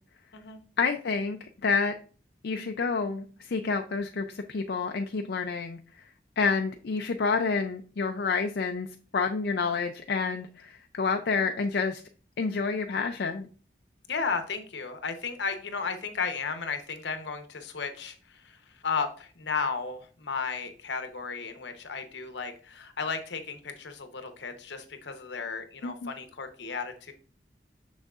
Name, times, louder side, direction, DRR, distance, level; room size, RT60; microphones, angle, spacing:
voice 1, 0.8-1.9 2.4-6.0 6.4-8.9 9.1-12.0 12.4-13.5 25.8-26.1, left 4 dB, 65° left, 5 dB, 0.4 m, -29 dB
voice 2, 14.1-27.1, left 5 dB, 80° left, 7 dB, 0.9 m, -34 dB
6.4 x 6.2 x 2.4 m, 0.40 s
head